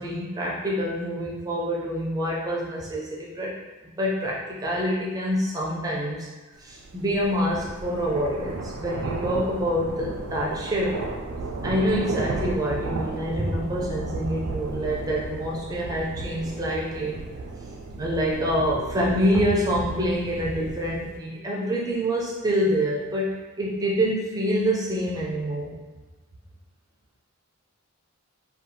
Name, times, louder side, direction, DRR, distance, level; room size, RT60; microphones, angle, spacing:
voice 1, 0.0-3.5 4.0-6.3 6.6-11.0 11.6-17.2 17.9-25.8, equal, 15° right, -4 dB, 0.4 m, -26 dB
sound 1, 6.7-21.2, right 3 dB, 85° right, 0.4 m, -34 dB
2.6 x 2.2 x 2.7 m, 1.2 s
head